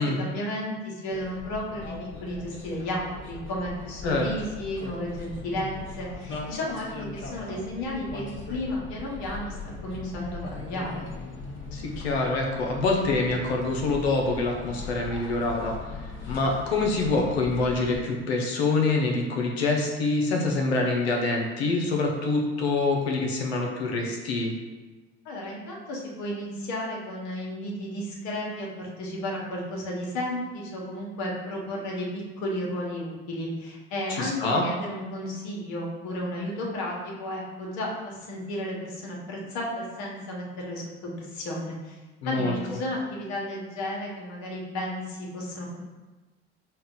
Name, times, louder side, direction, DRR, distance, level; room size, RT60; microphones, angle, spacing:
voice 1, 0.0-1.9 2.2-9.6 9.8-11.1 25.2-42.0 42.2-45.8, left 1 dB, 65° left, -2 dB, 1.4 m, -33 dB
sound 1, 1.1-18.0, left 3 dB, 40° left, 1.3 m, -39 dB
voice 2, 11.7-15.8 16.3-24.5 34.1-34.6 42.2-42.8, left 3 dB, 90° left, 1 dB, 0.9 m, -25 dB
5.4 x 2.4 x 3.8 m, 1.2 s
hypercardioid pair, 70°, 31 cm